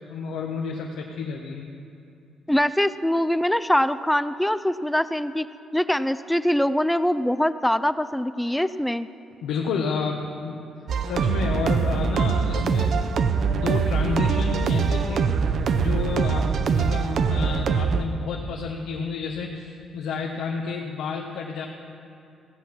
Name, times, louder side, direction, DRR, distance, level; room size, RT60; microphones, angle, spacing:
voice 1, 0.1-1.7 9.4-10.6 11.0-13.1 13.5-21.7, left 5 dB, 85° left, 0 dB, 0.9 m, -30 dB
voice 2, 2.5-5.5 5.7-9.1, equal, 5° left, 13 dB, 0.3 m, -23 dB
sound 1, 10.9-18.0, right 5 dB, 60° right, 0.6 m, -23 dB
16.0 x 7.7 x 5.8 m, 2.6 s
cardioid pair, 90°, 0 cm